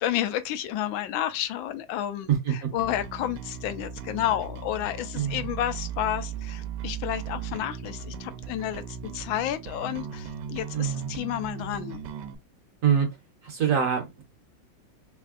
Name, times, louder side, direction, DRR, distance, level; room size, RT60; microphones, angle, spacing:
voice 1, 0.0-12.0, left 12 dB, 85° left, 1.4 m, -31 dB
voice 2, 2.3-2.7 5.1-5.5 10.7-11.2 12.8-13.1 13.4-14.2, right 8 dB, 55° right, 1.0 m, -25 dB
Bass guitar, 2.8-12.4, right 7 dB, 70° right, 1.1 m, -37 dB
3.6 x 3.3 x 2.3 m
omnidirectional pair, 2.1 m